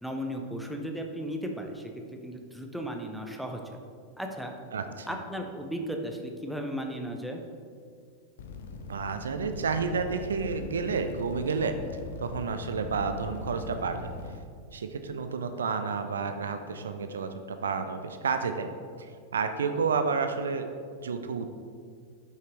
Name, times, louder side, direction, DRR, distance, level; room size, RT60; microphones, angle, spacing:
voice 1, 0.0-3.6 4.2-4.5 5.1-7.4, equal, ahead, 2 dB, 0.8 m, -35 dB
voice 2, 4.7-5.1 8.9-11.8 12.2-14.1 14.7-18.7 19.0-19.1 19.3-20.7 21.0-21.5, right 5 dB, 70° right, 8 dB, 0.4 m, -30 dB
sound 1, 8.4-14.4, left 3 dB, 60° left, 0.6 m, -40 dB
8.8 x 5.7 x 3.1 m, 2.2 s
figure-of-eight pair, 90°, 0 cm